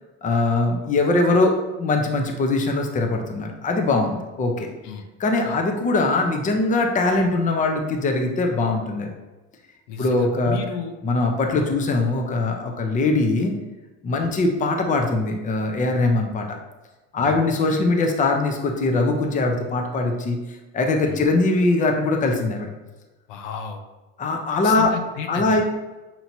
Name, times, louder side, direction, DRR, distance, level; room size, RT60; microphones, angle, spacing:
voice 1, 0.2-4.7 5.2-9.1 10.0-10.6 11.0-13.5 14.0-16.6 17.1-20.4 20.7-22.7 24.2-24.9 25.3-25.6, left 2 dB, 20° left, 3 dB, 0.6 m, -21 dB
voice 2, 9.9-10.9 11.5-11.7 14.2-14.3 17.2-17.4 21.0-21.2 23.3-23.8 24.6-25.6, left 7 dB, 70° left, 6 dB, 0.6 m, -33 dB
5.8 x 2.8 x 2.7 m, 1.1 s
supercardioid pair, 105°, 35 cm